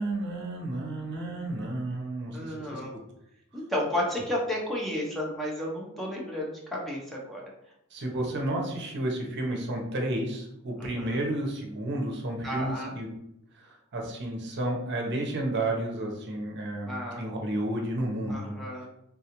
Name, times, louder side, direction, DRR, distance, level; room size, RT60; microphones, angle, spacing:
voice 1, 0.0-3.0 7.9-13.1 13.6-18.9, right 1 dB, 55° right, 1 dB, 0.7 m, -32 dB
voice 2, 2.3-2.9 3.5-7.5 10.8-11.2 12.4-12.9 16.9-17.2 18.3-18.9, left 1 dB, ahead, -4 dB, 0.6 m, -32 dB
3.7 x 2.3 x 2.8 m, 0.80 s
head